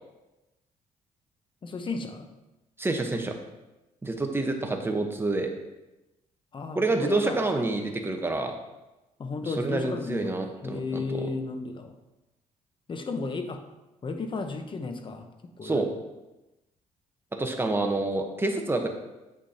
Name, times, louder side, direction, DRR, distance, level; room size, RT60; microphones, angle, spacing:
voice 1, 1.6-2.3 6.5-7.4 9.2-11.9 12.9-13.6 14.0-15.3 15.6-15.9, left 4 dB, 35° left, 6 dB, 0.9 m, -34 dB
voice 2, 2.8-3.3 4.0-5.5 6.7-8.5 9.4-11.3 15.6-15.9 17.4-18.9, right 2 dB, 15° right, 4 dB, 1.1 m, -28 dB
8.3 x 6.2 x 2.8 m, 1.0 s
supercardioid pair, 80°, 14 cm